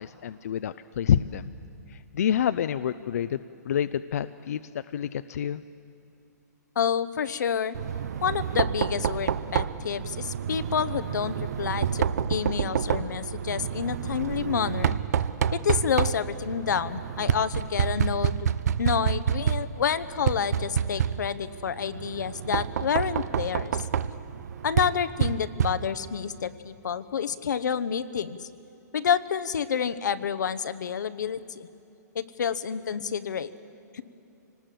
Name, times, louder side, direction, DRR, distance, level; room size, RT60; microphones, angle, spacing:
voice 1, 0.0-1.5 1.9-4.6 4.9-5.6, left 9 dB, 60° left, 13 dB, 0.5 m, -28 dB
voice 2, 6.8-7.8 8.2-15.0 15.5-18.5 18.8-23.8 24.6-28.4 28.9-31.7 32.1-33.5 33.9-34.0, left 7 dB, 85° left, 13 dB, 1.0 m, -29 dB
Knock, 7.7-26.2, right 8 dB, 65° right, 0.7 m, -28 dB
25.5 x 19.5 x 7.6 m, 2.8 s
hypercardioid pair, 170°, 10 cm